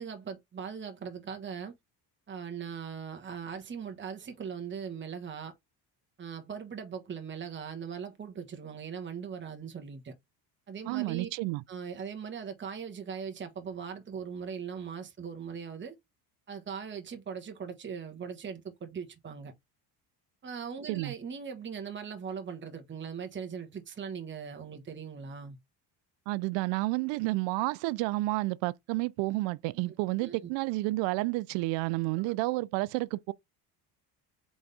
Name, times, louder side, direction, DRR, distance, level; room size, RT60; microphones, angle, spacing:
voice 1, 0.0-1.7 2.3-5.5 6.2-10.1 10.7-11.3 11.7-15.9 16.5-19.5 20.4-25.6 30.2-30.5 32.2-32.4, right 7 dB, 25° right, 1.2 m, -40 dB
voice 2, 10.9-11.6 20.9-21.1 26.3-33.3, right 21 dB, 85° right, 0.5 m, -30 dB
4.2 x 3.5 x 3.3 m
cardioid pair, 100°, 43 cm